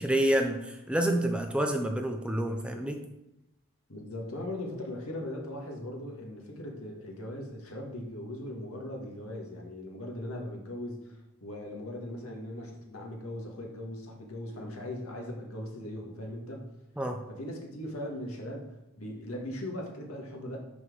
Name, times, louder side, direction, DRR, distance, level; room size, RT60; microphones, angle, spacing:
voice 1, 0.0-3.0 17.0-17.2, right 1 dB, 5° right, 4 dB, 0.6 m, -28 dB
voice 2, 3.9-16.6 17.3-20.6, left 1 dB, 90° left, 0 dB, 1.9 m, -39 dB
6.1 x 5.8 x 6.3 m, 0.90 s
head